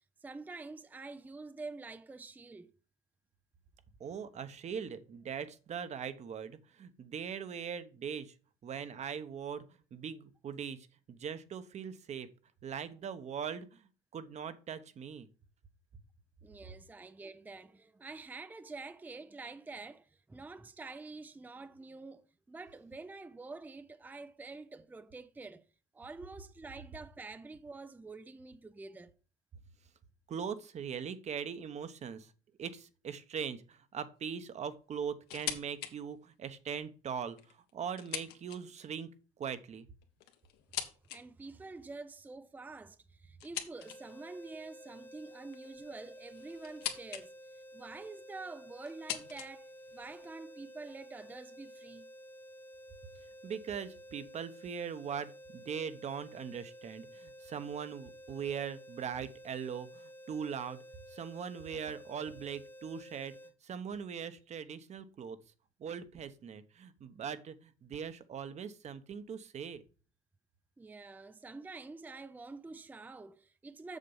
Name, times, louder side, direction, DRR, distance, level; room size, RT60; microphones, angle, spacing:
voice 1, 0.2-2.7 16.4-25.6 25.9-29.1 41.1-47.3 47.7-52.1 70.8-74.0, right 3 dB, 10° right, 0.5 m, -47 dB
voice 2, 4.0-8.3 8.6-12.3 12.6-15.3 30.3-32.3 32.6-39.1 39.4-39.9 53.4-60.8 61.1-63.4 63.6-65.4 65.8-69.8, right 7 dB, 40° right, 1.1 m, -41 dB
sound 1, 35.3-35.9 36.3-36.4 37.2-38.9 39.9-41.2 43.4-44.2 45.5-47.3 47.5-48.1 48.8-50.3, left 11 dB, 75° left, 1.6 m, -42 dB
sound 2, 43.8-63.5, equal, 10° left, 1.3 m, -52 dB
7.4 x 6.7 x 5.5 m
supercardioid pair, 100°, 17 cm